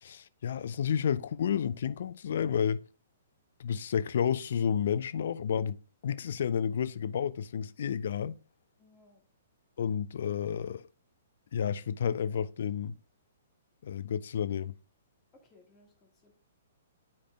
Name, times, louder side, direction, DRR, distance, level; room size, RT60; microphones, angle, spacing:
voice 1, 0.0-2.8 3.6-8.3 9.8-10.9 11.5-13.0 13.8-14.7, left 8 dB, 60° left, 0.3 m, -31 dB
voice 2, 8.8-9.2 15.3-16.3, left 2 dB, 25° left, 1.3 m, -62 dB
9.4 x 4.9 x 2.3 m
figure-of-eight pair, 120°, 0 cm